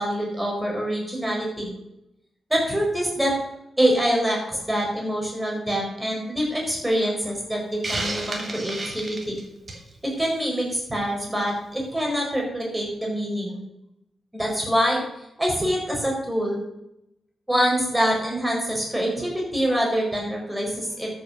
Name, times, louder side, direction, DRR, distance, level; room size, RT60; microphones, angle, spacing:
voice 1, 0.0-1.7 2.5-3.3 3.8-9.4 10.0-13.6 14.3-15.0 15.4-16.6 17.5-21.1, equal, 5° right, -1 dB, 4.8 m, -25 dB
Hiss, 7.8-9.9, right 2 dB, 30° right, 2.7 m, -31 dB
13.0 x 7.2 x 6.6 m, 0.82 s
wide cardioid pair, 135°, 0 cm